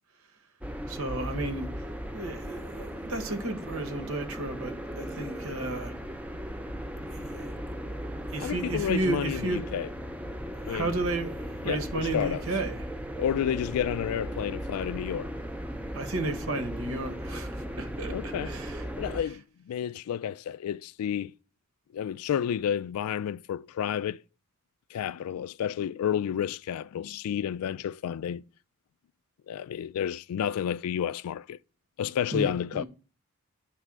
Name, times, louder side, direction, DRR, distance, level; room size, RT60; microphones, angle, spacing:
sound 1, 0.6-19.2, equal, 5° right, 0.5 m, -37 dB
voice 1, 0.9-6.0 7.1-7.6 8.3-9.7 10.5-12.9 15.9-18.8 32.3-32.8, right 2 dB, 75° right, 1.2 m, -33 dB
voice 2, 8.4-9.9 10.6-10.9 11.6-12.4 13.2-15.3 18.1-18.5 19.0-21.3 21.9-24.2 24.9-28.4 29.5-31.6 32.0-32.8, left 9 dB, 85° left, 0.3 m, -31 dB
8.2 x 3.3 x 6.0 m
head